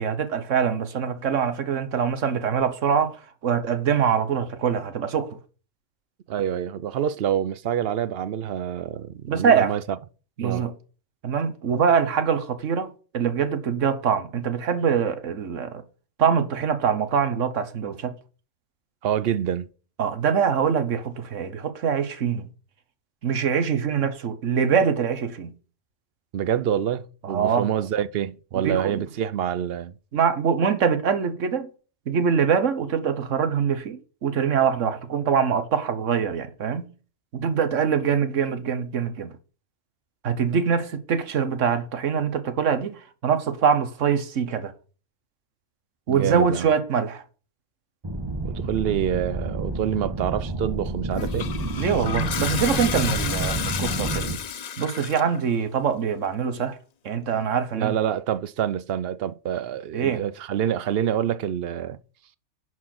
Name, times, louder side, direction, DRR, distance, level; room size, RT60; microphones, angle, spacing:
voice 1, 0.0-5.4 9.3-9.8 10.4-10.7 11.2-15.8 16.2-18.1 20.0-22.5 23.2-25.5 27.2-27.7 28.5-29.0 30.1-31.7 32.1-36.9 37.3-39.3 40.2-44.7 46.1-47.2 51.8-54.3 54.8-56.8 57.0-57.9 59.9-60.2, right 7 dB, 80° right, 1.4 m, -24 dB
voice 2, 6.3-9.8 10.4-10.7 19.0-19.7 26.3-29.9 46.1-46.7 48.4-51.5 57.7-62.0, right 9 dB, 60° right, 0.8 m, -26 dB
sound 1, 48.0-54.4, right 2 dB, 20° right, 0.9 m, -29 dB
Toilet flush, 51.1-55.4, left 8 dB, 50° left, 0.5 m, -31 dB
11.0 x 4.7 x 5.9 m
omnidirectional pair, 1.3 m